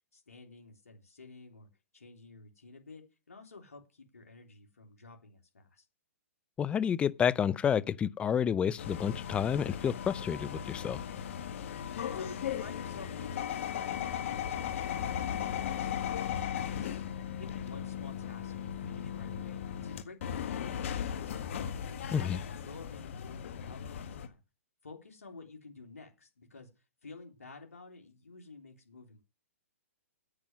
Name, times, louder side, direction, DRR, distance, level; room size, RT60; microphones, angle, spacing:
voice 1, 0.1-1.7 1.9-5.8 12.1-17.0 17.4-21.5 21.9-24.4 24.8-26.7 27.0-29.2, left 3 dB, 85° left, 3.4 m, -51 dB
voice 2, 6.6-11.0 22.1-22.4, left 8 dB, 15° left, 0.5 m, -30 dB
sound 1, 8.8-24.3, left 9 dB, 60° left, 1.7 m, -37 dB
9.6 x 9.0 x 6.2 m
hypercardioid pair, 130°, 8 cm